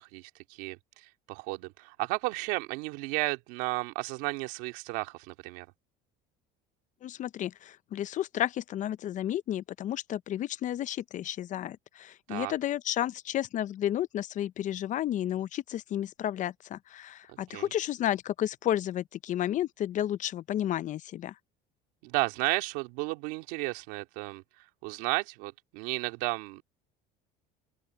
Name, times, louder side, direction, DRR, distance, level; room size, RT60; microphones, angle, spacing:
voice 1, 0.0-5.7 12.3-12.5 17.3-17.7 22.0-24.4 24.8-26.6, right 23 dB, 85° right, 2.4 m, -33 dB
voice 2, 7.0-21.3, left 12 dB, 45° left, 0.6 m, -32 dB
open air
cardioid pair, 120°, 18 cm